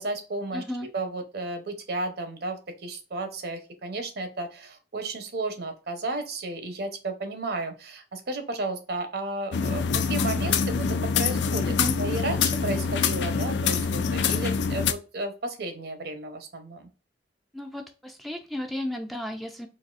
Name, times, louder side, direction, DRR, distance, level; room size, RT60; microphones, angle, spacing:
voice 1, 0.0-0.6 0.9-10.9 11.1-16.9, right 2 dB, 60° right, 7 dB, 0.7 m, -33 dB
voice 2, 0.5-0.9 11.7-12.0 17.5-19.7, left 1 dB, ahead, 4 dB, 0.3 m, -34 dB
sound 1, 9.5-14.9, left 6 dB, 70° left, 0.4 m, -25 dB
4.0 x 2.7 x 2.4 m, 0.33 s
head